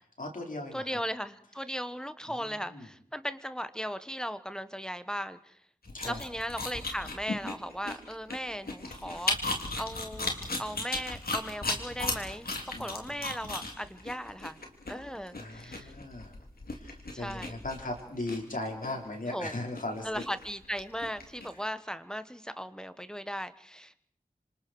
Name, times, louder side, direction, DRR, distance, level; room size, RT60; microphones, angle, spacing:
voice 1, 0.2-1.0 2.2-2.9 5.9-6.2 12.7-13.2 15.3-16.3 16.7-20.2, left 2 dB, 65° left, 1 dB, 4.9 m, -38 dB
voice 2, 0.7-5.6 6.0-10.3 10.6-12.5 12.8-14.6 14.9-15.9 17.1-17.6 19.3-19.5 20.0-24.0, equal, 5° left, 12 dB, 1.2 m, -37 dB
sound 1, 5.8-21.5, left 2 dB, 85° left, 3.4 m, -36 dB
28.0 x 26.0 x 4.7 m, 0.64 s
wide cardioid pair, 60°, 15 cm